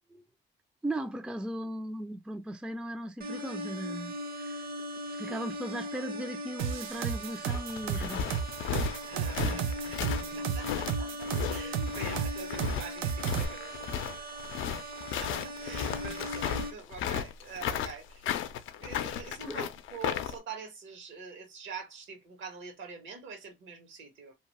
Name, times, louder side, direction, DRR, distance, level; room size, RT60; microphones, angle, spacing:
voice 1, 0.8-4.7 5.1-8.4 9.4-9.8 10.3-10.5 11.8-11.9 16.2-16.3 19.5-19.7, right 1 dB, 5° right, 0.4 m, -38 dB
sound 1, 3.2-16.7, equal, 50° right, 0.9 m, -40 dB
sound 2, 6.6-13.5, right 7 dB, 90° right, 0.6 m, -32 dB
sound 3, 7.2-20.4, left 9 dB, 80° left, 0.5 m, -35 dB
voice 2, 9.1-14.7 15.2-18.3 18.8-24.3, right 5 dB, 75° right, 1.4 m, -45 dB
2.8 x 2.2 x 2.9 m
cardioid pair, 90°, 20 cm